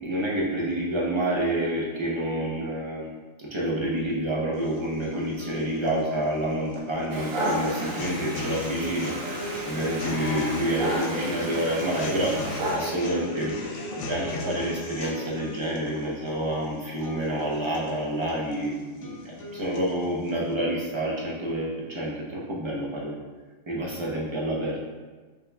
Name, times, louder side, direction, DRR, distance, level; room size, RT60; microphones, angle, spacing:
voice 1, 0.0-3.1 3.4-13.5 13.9-23.1 23.7-24.8, right 1 dB, 30° right, -5 dB, 0.6 m, -28 dB
sound 1, 4.5-20.5, left 2 dB, 70° left, 0.9 m, -37 dB
Dog, 7.1-12.8, right 1 dB, 90° right, 1.1 m, -33 dB
5.4 x 3.0 x 2.3 m, 1.3 s
omnidirectional pair, 1.3 m